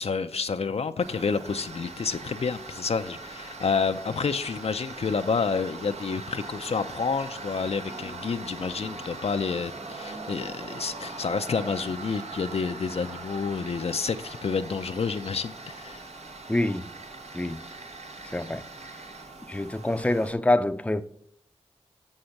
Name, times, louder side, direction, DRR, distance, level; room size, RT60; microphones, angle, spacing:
voice 1, 0.0-16.0, left 5 dB, 65° left, 0.4 m, -29 dB
Tools, 1.0-20.3, right 3 dB, 75° right, 1.1 m, -41 dB
voice 2, 16.5-16.9 17.3-17.6 18.3-18.6 19.5-21.0, left 1 dB, 10° left, 0.5 m, -25 dB
7.0 x 6.5 x 5.7 m
cardioid pair, 50°, 11 cm